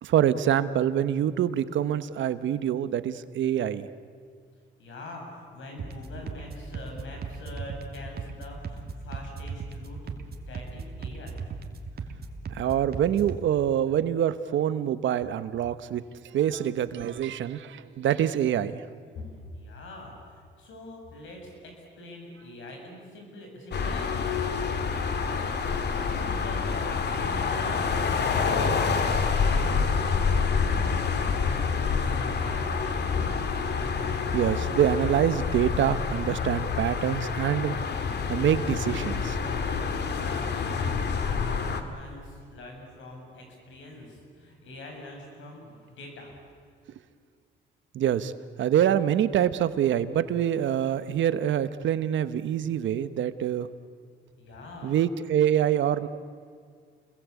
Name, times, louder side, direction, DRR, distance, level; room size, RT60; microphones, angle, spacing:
voice 1, 0.0-3.9 12.5-18.8 34.3-37.8 38.3-39.4 47.9-48.3 48.6-53.7 54.8-56.1, right 10 dB, 70° right, 13 dB, 1.2 m, -25 dB
voice 2, 4.8-10.2 10.5-11.4 19.1-19.3 19.5-24.9 25.7-30.8 31.1-33.5 40.0-46.4 54.4-55.0, left 1 dB, 75° left, 2 dB, 7.8 m, -44 dB
sound 1, 5.8-13.4, right 4 dB, 50° right, 2.7 m, -38 dB
sound 2, 23.7-41.8, left 5 dB, 60° left, 2.5 m, -27 dB
29.0 x 21.5 x 8.5 m, 2.1 s
cardioid pair, 90°, 20 cm